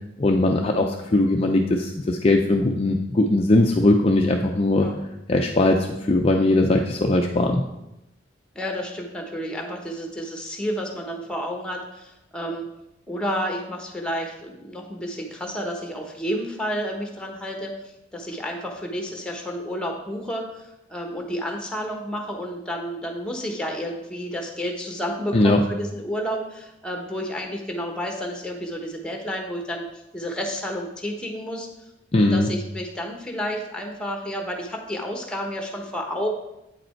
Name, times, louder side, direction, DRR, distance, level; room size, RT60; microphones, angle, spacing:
voice 1, 0.2-4.9 5.3-7.6 25.3-25.6 32.1-32.5, left 2 dB, 30° left, 2 dB, 0.5 m, -20 dB
voice 2, 8.5-12.6 13.1-17.7 18.1-29.9 30.1-31.7 32.1-36.3, equal, 5° left, 2 dB, 1.1 m, -31 dB
8.6 x 5.2 x 4.4 m, 0.89 s
head